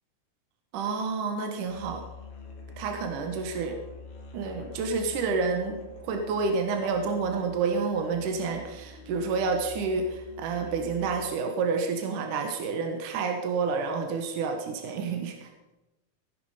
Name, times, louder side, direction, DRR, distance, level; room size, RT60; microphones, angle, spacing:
voice 1, 0.7-2.0 2.8-3.8 4.3-5.8 6.0-15.5, right 4 dB, 70° right, 4 dB, 2.8 m, -29 dB
Musical instrument, 1.6-11.4, left 3 dB, 60° left, 3.1 m, -47 dB
17.5 x 9.8 x 4.9 m, 1.0 s
omnidirectional pair, 3.8 m